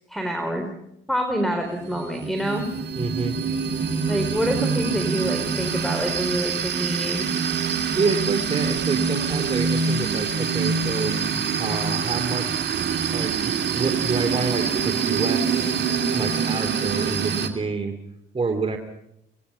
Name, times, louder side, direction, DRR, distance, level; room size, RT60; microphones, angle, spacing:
voice 1, 0.1-0.7 1.1-2.7 4.1-7.3, equal, ahead, 5 dB, 4.0 m, -26 dB
sound 1, 1.7-17.5, right 6 dB, 60° right, 2.8 m, -25 dB
voice 2, 3.0-3.4 8.0-11.1 11.6-12.7 13.1-15.8 16.1-18.0 18.3-18.8, right 4 dB, 30° right, 4 dB, 2.8 m, -28 dB
25.5 x 19.5 x 5.6 m, 0.79 s
cardioid pair, 90°, 20 cm